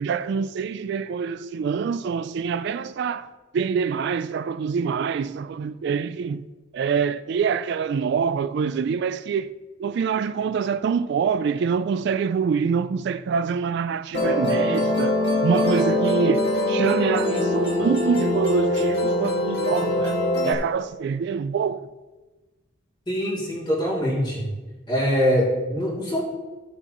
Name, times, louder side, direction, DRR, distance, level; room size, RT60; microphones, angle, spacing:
voice 1, 0.0-6.5 6.7-9.5 9.8-15.2 15.4-20.2 20.4-21.9, right 6 dB, 60° right, 0.3 m, -25 dB
Musical instrument, 14.1-20.5, left 1 dB, 55° left, 2.2 m, -23 dB
voice 2, 23.1-24.5 24.9-26.2, equal, 25° left, 2.8 m, -23 dB
14.0 x 7.7 x 3.0 m
head